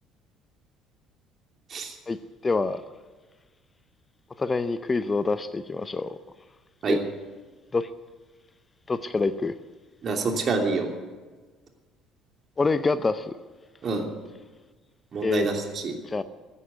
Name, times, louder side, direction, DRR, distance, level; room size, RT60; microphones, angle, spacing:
voice 1, 2.4-2.8 4.4-6.2 6.9-7.0 7.7-7.9 8.9-9.5 12.6-13.4 15.2-15.5 16.1-16.2, left 3 dB, 25° left, 0.7 m, -26 dB
voice 2, 10.0-10.9 13.8-14.1 15.1-15.9, right 4 dB, 45° right, 2.9 m, -27 dB
15.5 x 9.8 x 9.4 m
hypercardioid pair, 55°, 0 cm